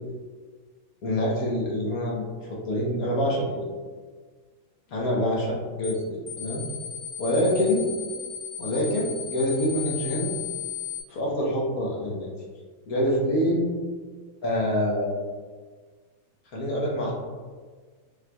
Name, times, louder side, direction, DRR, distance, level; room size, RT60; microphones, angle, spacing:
voice 1, 1.0-3.7 4.9-6.6 7.2-7.9 8.6-10.3 11.1-12.3 12.9-13.7 14.4-15.2 16.5-17.1, equal, 55° left, -3 dB, 1.2 m, -26 dB
sound 1, 5.8-6.0 6.3-11.0, left 9 dB, 80° left, 0.4 m, -35 dB
5.9 x 3.2 x 2.2 m, 1.5 s
omnidirectional pair, 2.2 m